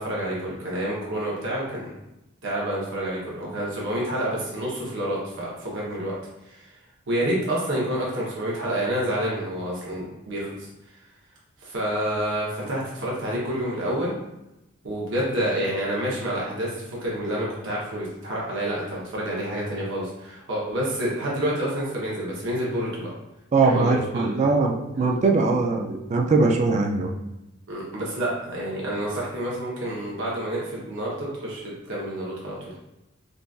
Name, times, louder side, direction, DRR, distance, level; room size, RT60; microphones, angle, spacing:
voice 1, 0.0-1.9 2.4-6.2 6.4-6.7 7.1-10.7 11.6-14.1 14.8-23.1 23.6-24.3 24.9-25.2 27.7-32.7, right 1 dB, 60° right, -5 dB, 0.8 m, -28 dB
voice 2, 23.5-27.1, right 3 dB, 35° right, 2 dB, 0.3 m, -21 dB
3.8 x 2.4 x 2.3 m, 0.92 s
head